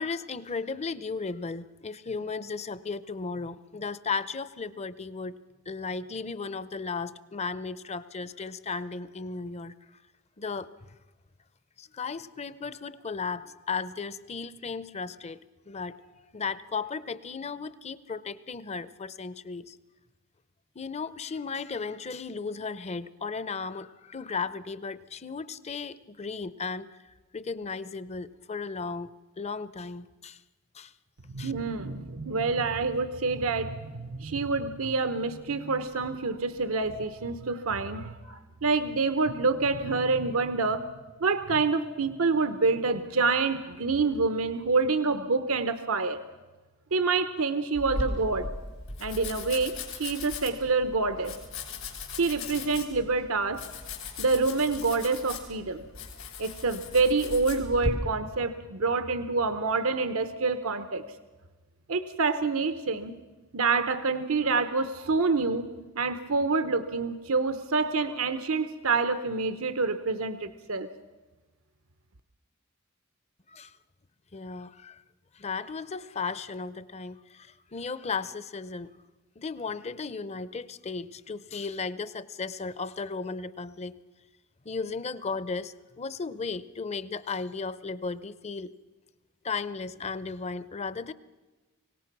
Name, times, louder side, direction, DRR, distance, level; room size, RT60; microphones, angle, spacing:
voice 1, 0.0-5.3 5.7-9.7 10.4-10.9 11.8-16.0 16.3-19.8 20.8-26.9 27.3-29.1 29.4-30.4 30.7-30.9 31.4-31.5 73.5-73.7 74.3-75.0 75.4-78.9 79.4-83.9 84.6-88.7 89.4-91.1, left 4 dB, 30° left, 16 dB, 0.6 m, -35 dB
voice 2, 31.3-40.9 41.2-46.2 46.9-48.5 49.0-51.4 52.1-53.6 54.2-55.8 56.4-61.0 61.9-63.1 63.5-65.7 66.0-70.9, right 4 dB, 85° right, 10 dB, 0.9 m, -27 dB
Domestic sounds home sounds, 47.7-57.9, left 3 dB, 85° left, 5.7 m, -38 dB
24.5 x 18.0 x 6.0 m, 1.2 s
head